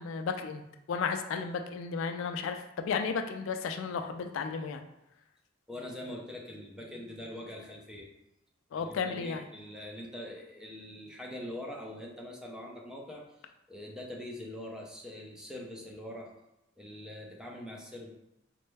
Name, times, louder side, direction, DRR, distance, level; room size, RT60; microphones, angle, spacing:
voice 1, 0.0-4.8 8.7-9.4, left 5 dB, 80° left, 7 dB, 0.3 m, -34 dB
voice 2, 5.7-8.1 8.7-13.2 13.7-16.3 16.8-18.1, left 1 dB, 5° right, -1 dB, 0.5 m, -43 dB
4.2 x 2.2 x 3.2 m, 0.88 s
head